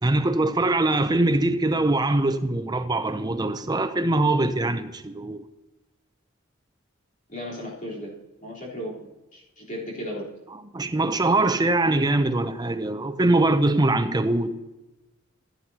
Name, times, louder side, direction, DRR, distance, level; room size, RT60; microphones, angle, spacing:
voice 1, 0.0-5.4 10.5-14.6, right 2 dB, 20° right, 0.6 m, -23 dB
voice 2, 7.3-8.1 8.4-10.3, equal, 40° left, 3.9 m, -35 dB
15.5 x 9.5 x 2.9 m
head